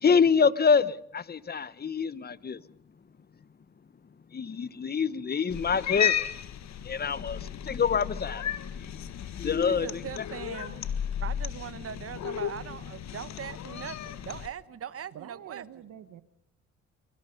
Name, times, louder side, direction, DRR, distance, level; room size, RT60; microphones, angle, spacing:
voice 1, 0.0-2.6 4.3-6.3 6.8-8.5 8.8-8.9 9.4-10.0, left 6 dB, 30° left, 1.0 m, -26 dB
Cat, 5.5-14.5, left 9 dB, 65° left, 1.7 m, -34 dB
voice 2, 9.7-15.7, right 8 dB, 50° right, 1.1 m, -41 dB
voice 3, 15.1-16.2, right 11 dB, 75° right, 1.6 m, -46 dB
25.0 x 24.0 x 5.4 m
cardioid pair, 90°, 30 cm